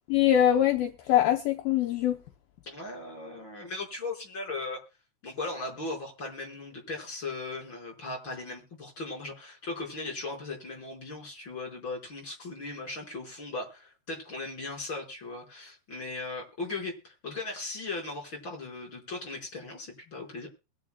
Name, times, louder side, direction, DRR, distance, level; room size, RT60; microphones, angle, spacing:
voice 1, 0.1-2.2, left 11 dB, 75° left, 2.4 m, -23 dB
voice 2, 2.6-4.8 5.2-20.5, left 3 dB, 30° left, 5.7 m, -38 dB
22.0 x 10.0 x 2.3 m
omnidirectional pair, 4.7 m